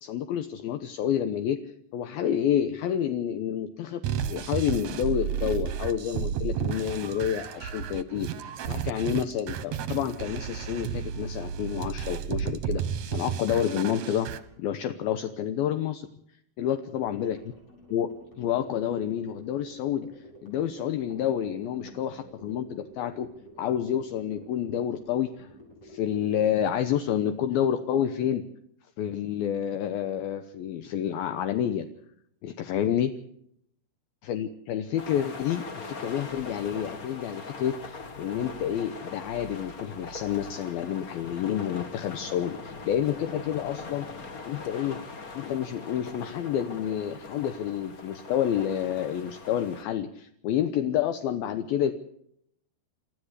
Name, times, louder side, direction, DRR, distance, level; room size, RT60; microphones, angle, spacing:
voice 1, 0.0-4.0 4.3-14.3 14.6-16.1 16.6-17.4 17.9-23.3 23.6-25.5 25.8-28.4 29.0-31.9 32.4-33.1 34.2-44.1 44.4-45.0 45.3-51.9, left 10 dB, 70° left, 9 dB, 2.6 m, -29 dB
sound 1, 4.0-14.4, right 8 dB, 60° right, 1.9 m, -32 dB
sound 2, 17.0-27.3, right 1 dB, 35° left, 8.9 m, -51 dB
sound 3, 35.0-49.8, left 3 dB, 55° left, 0.9 m, -41 dB
28.5 x 13.5 x 8.2 m, 0.72 s
omnidirectional pair, 4.8 m